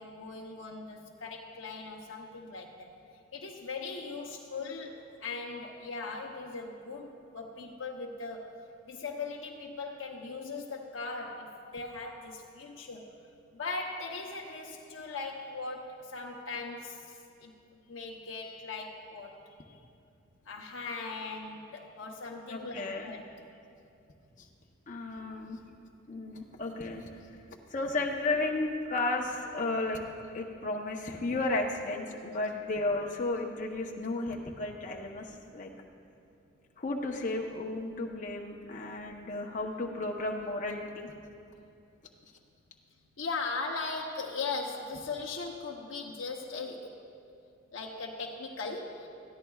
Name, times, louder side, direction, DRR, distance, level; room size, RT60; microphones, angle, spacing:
voice 1, 0.0-2.9 3.3-8.5 8.9-13.1 13.5-17.5 17.9-19.4 20.5-23.2 43.2-47.0 47.7-49.1, left 3 dB, 85° left, -1 dB, 0.8 m, -39 dB
voice 2, 22.5-23.1 24.4-24.5 24.9-25.6 26.1-27.3 27.7-30.0 30.3-35.7 36.8-41.1, left 2 dB, 40° left, 0 dB, 0.9 m, -33 dB
20.0 x 14.0 x 2.4 m, 2.6 s
head